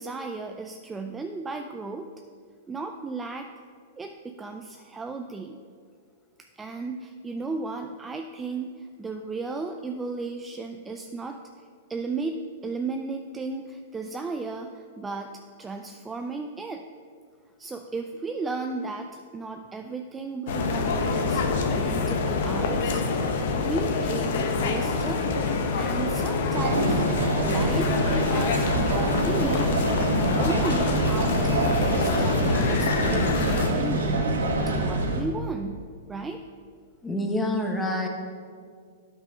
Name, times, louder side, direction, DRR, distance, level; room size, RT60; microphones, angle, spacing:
voice 1, 0.0-2.1 2.7-3.5 4.0-5.6 6.5-11.4 11.9-16.9 17.6-23.0 23.6-25.2 25.7-27.0 27.4-29.7 30.4-34.3 34.7-35.8 36.1-36.4, right 3 dB, 15° right, 4 dB, 0.4 m, -34 dB
sound 1, 20.5-33.7, left 4 dB, 65° left, 0.9 m, -26 dB
sound 2, 26.5-35.2, right 1 dB, 90° right, 1.2 m, -25 dB
voice 2, 37.0-38.1, left 1 dB, 10° left, 2 dB, 1.1 m, -27 dB
9.0 x 5.5 x 5.0 m, 2.1 s
hypercardioid pair, 125°, 0 cm